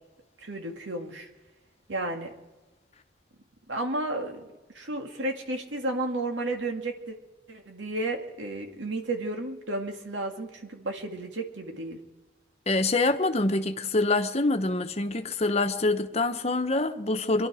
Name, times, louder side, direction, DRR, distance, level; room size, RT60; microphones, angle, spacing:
voice 1, 0.4-1.3 1.9-2.3 3.7-4.5 4.7-7.2 7.5-12.0, right 2 dB, 90° right, 2.2 m, -32 dB
voice 2, 12.7-17.5, left 2 dB, 35° left, 1.0 m, -25 dB
25.0 x 11.5 x 4.9 m
head